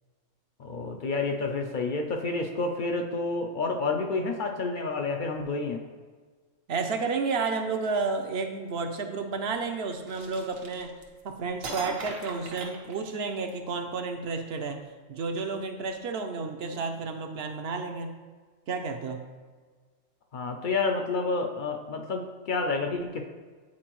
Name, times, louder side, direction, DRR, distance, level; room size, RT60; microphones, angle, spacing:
voice 1, 0.6-5.8 20.3-23.3, left 3 dB, 60° left, 3 dB, 0.5 m, -29 dB
voice 2, 6.7-10.9 11.2-14.8 15.1-18.1 18.7-19.2, right 4 dB, 65° right, 6 dB, 0.7 m, -31 dB
sound 1, 10.1-11.2 11.6-13.5, right 3 dB, 85° right, 1.3 m, -39 dB
8.6 x 4.4 x 3.0 m, 1.5 s
omnidirectional pair, 1.3 m